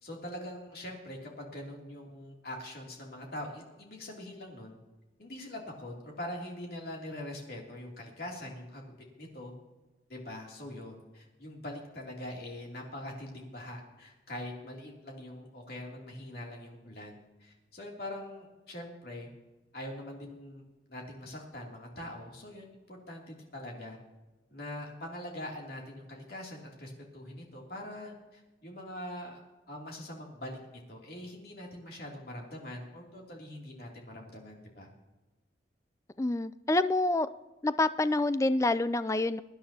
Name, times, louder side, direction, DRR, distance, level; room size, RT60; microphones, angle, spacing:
voice 1, 0.0-4.8 5.2-8.8 9.2-9.5 10.1-19.3 19.7-20.6 20.9-24.0 24.5-29.4 29.7-34.9, left 1 dB, 60° left, -1 dB, 2.9 m, -43 dB
voice 2, 36.2-37.3 37.6-39.4, left 2 dB, 15° left, 14 dB, 0.3 m, -27 dB
23.0 x 10.0 x 2.9 m, 1.1 s
head